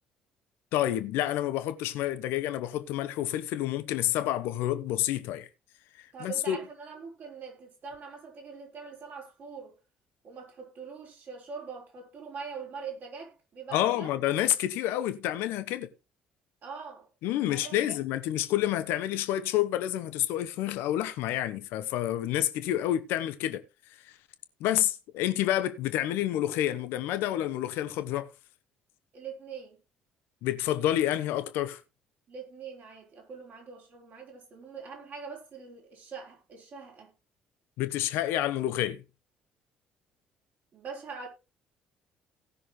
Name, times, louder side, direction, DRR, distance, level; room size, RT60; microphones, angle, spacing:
voice 1, 0.7-5.5 6.2-6.6 13.7-15.9 17.2-23.6 24.0-24.1 24.6-28.3 30.4-31.8 37.8-39.0, left 13 dB, 60° left, 1.1 m, -29 dB
voice 2, 6.1-9.7 10.2-14.1 16.6-17.1 17.5-18.0 29.1-29.8 32.3-37.1 40.7-41.3, right 5 dB, 50° right, 5.9 m, -43 dB
18.0 x 6.3 x 3.4 m
figure-of-eight pair, 50°, 4 cm